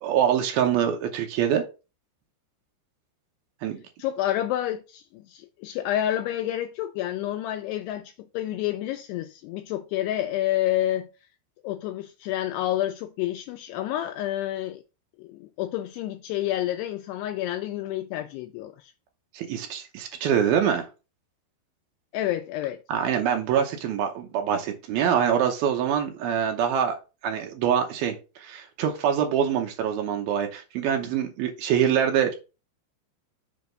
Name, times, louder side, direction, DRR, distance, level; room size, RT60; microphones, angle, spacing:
voice 1, 0.0-1.7 3.6-3.8 19.3-20.9 22.9-32.3, right 8 dB, 80° right, 2.2 m, -25 dB
voice 2, 4.0-11.1 11.6-14.8 15.2-18.9 22.1-22.8, left 13 dB, 90° left, 2.3 m, -29 dB
7.3 x 3.5 x 5.1 m
omnidirectional pair, 5.3 m